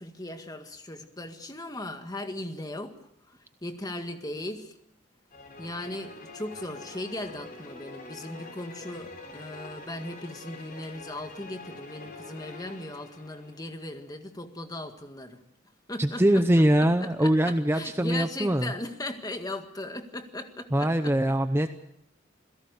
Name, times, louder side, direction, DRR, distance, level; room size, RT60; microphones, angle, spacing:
voice 1, 0.0-2.9 3.6-4.7 5.6-15.4 15.9-21.1, left 1 dB, 20° left, 6 dB, 1.8 m, -38 dB
sound 1, 5.3-13.9, left 3 dB, 45° left, 4.1 m, -45 dB
voice 2, 16.0-18.7 20.7-21.7, right 1 dB, 15° right, 8 dB, 0.7 m, -23 dB
28.0 x 17.0 x 6.7 m, 0.74 s
head